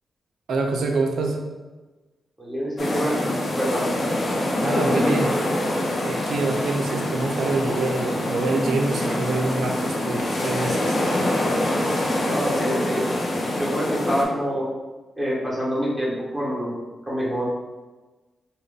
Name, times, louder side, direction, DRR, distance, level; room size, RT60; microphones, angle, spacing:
voice 1, 0.5-1.4 4.6-5.4 6.0-11.0, right 3 dB, 85° right, 3 dB, 0.4 m, -26 dB
voice 2, 2.4-3.2 3.5-3.9 12.2-13.0 13.5-14.6 15.2-16.7 17.1-17.5, equal, 10° right, -6 dB, 1.3 m, -26 dB
sound 1, 2.8-14.2, left 1 dB, 60° left, 0.7 m, -25 dB
3.6 x 2.2 x 3.5 m, 1.2 s
cardioid pair, 80°, 0 cm